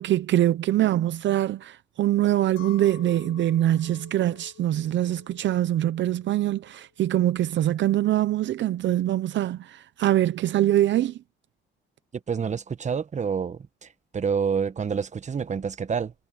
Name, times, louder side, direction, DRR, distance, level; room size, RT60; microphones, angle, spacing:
voice 1, 0.0-11.2, right 13 dB, 65° right, 0.7 m, -23 dB
Chink clink, 2.6-8.0, left 13 dB, 90° left, 4.6 m, -50 dB
voice 2, 12.3-13.9 14.1-16.1, right 6 dB, 35° right, 1.2 m, -28 dB
cardioid pair, 90°, 20 cm